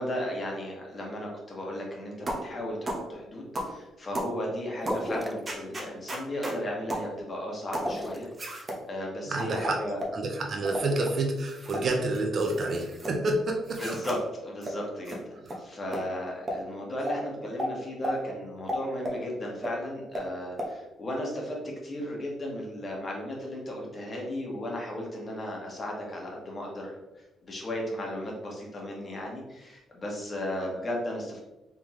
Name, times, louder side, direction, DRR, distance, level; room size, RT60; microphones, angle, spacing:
voice 1, 0.0-10.0 13.8-21.6 21.8-31.4, left 1 dB, 35° left, -1 dB, 1.3 m, -35 dB
sound 1, 2.3-2.5 2.9-3.1 3.6-3.8 4.1-4.3 4.9-5.1 5.5-6.6 6.9-7.1 7.7-7.9 8.4-8.8 9.4-10.2 10.7-10.9 11.4-11.8 12.1-13.1 13.7-14.2 14.6-14.7 15.1-15.2 15.5-15.6 15.9-16.0 16.5-16.6 17.1-17.2 17.6-17.7 18.0-18.2 18.7-19.2 19.6-19.7 20.1-20.3 20.6-20.7, equal, 30° right, 1.0 m, -33 dB
sound 2, 4.8-5.5 7.7-8.4 10.5-11.1, equal, ahead, 0.5 m, -35 dB
voice 2, 9.3-9.8 10.1-13.8, right 2 dB, 50° right, 2 dB, 0.6 m, -28 dB
3.5 x 3.5 x 3.1 m, 0.99 s
cardioid pair, 90°, 0 cm